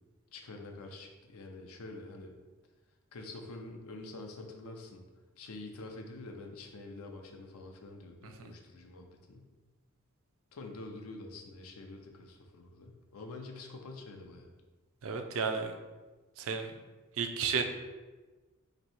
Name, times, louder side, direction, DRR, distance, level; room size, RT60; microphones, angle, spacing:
voice 1, 0.3-2.3 3.1-5.0 5.4-9.5 10.5-14.5, left 2 dB, 80° left, 3 dB, 0.5 m, -46 dB
voice 2, 15.0-15.7 16.4-16.7 17.2-17.6, right 5 dB, 65° right, 6 dB, 0.4 m, -32 dB
3.0 x 2.7 x 4.2 m, 1.3 s
head